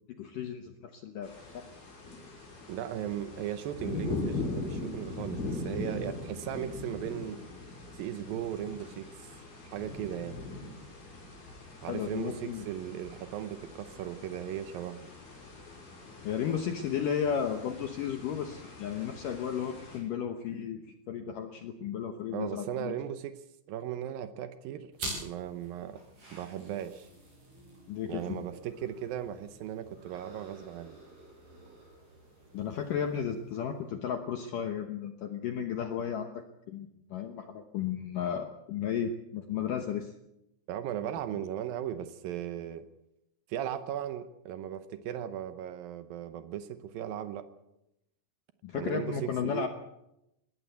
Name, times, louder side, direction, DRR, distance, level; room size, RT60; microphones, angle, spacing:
voice 1, 0.2-1.7 11.9-12.7 16.2-23.0 27.9-28.5 32.5-40.1 48.6-49.7, left 8 dB, 75° left, 6 dB, 2.0 m, -34 dB
sound 1, 1.2-20.0, left 3 dB, 55° left, 8.1 m, -41 dB
voice 2, 2.7-7.4 7.9-9.3 9.7-10.3 11.8-15.1 22.3-23.3 23.7-24.9 25.2-26.0 26.3-27.1 28.1-31.0 40.7-42.9 43.5-47.5 48.7-49.7, right 10 dB, 85° right, 11 dB, 2.0 m, -37 dB
sound 2, 24.9-33.9, right 1 dB, 45° right, 9.0 m, -47 dB
20.5 x 16.5 x 8.2 m, 0.86 s
omnidirectional pair, 5.4 m